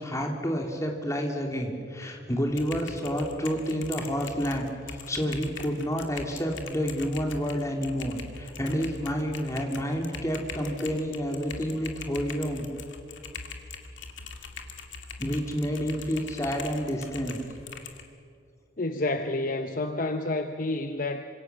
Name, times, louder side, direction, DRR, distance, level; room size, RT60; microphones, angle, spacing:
voice 1, 0.0-12.7 15.2-17.4, equal, 15° left, 1 dB, 2.8 m, -29 dB
Typing, 2.5-18.0, left 4 dB, 75° left, 2.3 m, -42 dB
voice 2, 18.8-21.2, left 2 dB, 45° left, 7 dB, 0.9 m, -29 dB
27.0 x 25.5 x 6.9 m, 2.4 s
head